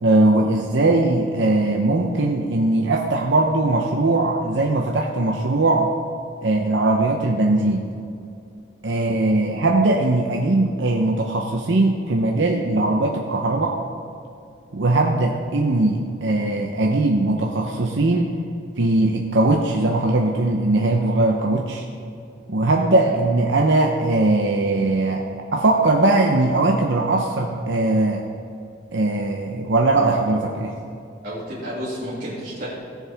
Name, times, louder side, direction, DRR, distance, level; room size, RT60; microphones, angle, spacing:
voice 1, 0.0-5.9 6.4-7.9 8.8-13.7 14.7-18.3 18.8-21.8 22.5-25.2 25.5-28.2 28.9-30.7, right 2 dB, 75° right, 0 dB, 0.8 m, -20 dB
voice 2, 31.2-32.7, equal, 50° right, -11 dB, 2.5 m, -31 dB
17.5 x 7.3 x 3.5 m, 2.6 s
head